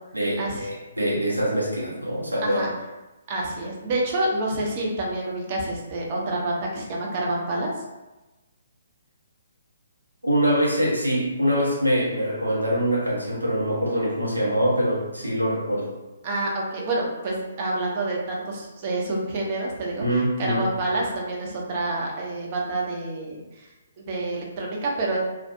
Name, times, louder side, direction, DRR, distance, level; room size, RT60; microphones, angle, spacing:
voice 1, 0.1-2.7 10.2-15.9 20.0-20.7, equal, 85° right, -5 dB, 0.7 m, -24 dB
voice 2, 3.3-7.7 16.2-20.0 20.4-23.7 24.0-25.2, right 2 dB, 35° right, -2 dB, 0.5 m, -28 dB
2.4 x 2.2 x 2.6 m, 1.1 s
figure-of-eight pair, 130°, 0 cm